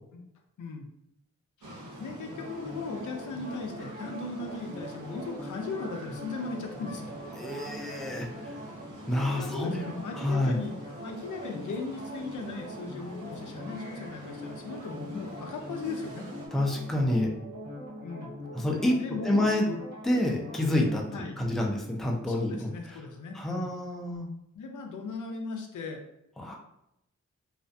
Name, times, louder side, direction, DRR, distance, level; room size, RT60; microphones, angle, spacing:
sound 1, 1.6-16.5, right 1 dB, 85° right, 0.6 m, -46 dB
voice 1, 2.0-7.1 9.3-10.7 11.0-16.2 18.0-18.3 19.0-19.8 21.1-21.4 22.3-23.7 24.6-26.0, left 3 dB, 80° left, 3 dB, 0.5 m, -38 dB
sound 2, 2.2-21.0, equal, 55° right, 1.3 m, -42 dB
voice 2, 7.3-8.6 9.1-10.6 16.5-17.3 18.5-19.7 20.0-22.7 23.3-24.3 26.4-26.6, left 1 dB, ahead, 0 dB, 0.3 m, -28 dB
2.4 x 2.1 x 2.5 m, 0.82 s
wide cardioid pair, 120°, 30 cm